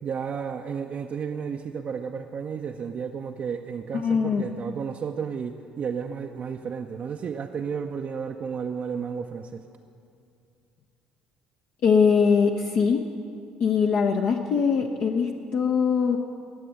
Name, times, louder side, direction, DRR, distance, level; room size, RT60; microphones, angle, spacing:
voice 1, 0.0-9.6, right 6 dB, 40° right, 3 dB, 0.6 m, -32 dB
voice 2, 4.0-4.4 11.8-13.0 13.6-16.2, left 6 dB, 50° left, 2 dB, 0.7 m, -22 dB
20.0 x 7.6 x 7.5 m, 2.5 s
figure-of-eight pair, 50°, 4 cm